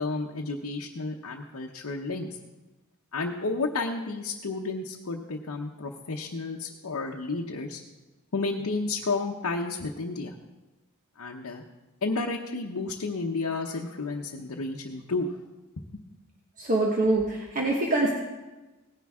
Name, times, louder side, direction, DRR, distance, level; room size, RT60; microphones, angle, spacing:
voice 1, 0.0-2.3 3.1-7.8 8.3-10.3 11.2-11.6 12.0-15.3 15.9-16.0, left 3 dB, 75° left, 0 dB, 0.9 m, -31 dB
voice 2, 16.6-18.1, right 2 dB, 40° right, -2 dB, 1.3 m, -24 dB
17.5 x 10.5 x 3.6 m, 1.1 s
head